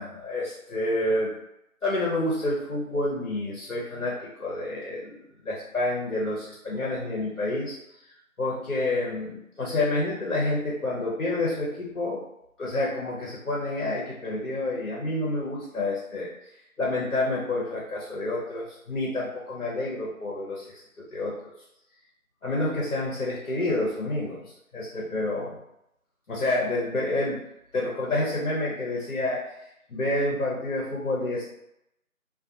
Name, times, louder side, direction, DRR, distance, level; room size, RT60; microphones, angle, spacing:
voice 1, 0.0-1.3 1.8-5.2 5.4-7.8 8.4-12.2 12.6-16.3 16.8-21.5 22.4-24.4 24.7-25.6 26.3-27.4 27.7-29.5 29.9-31.4, left 2 dB, 65° left, -3 dB, 0.7 m, -28 dB
2.3 x 2.2 x 2.5 m, 0.82 s
figure-of-eight pair, 175°, 43 cm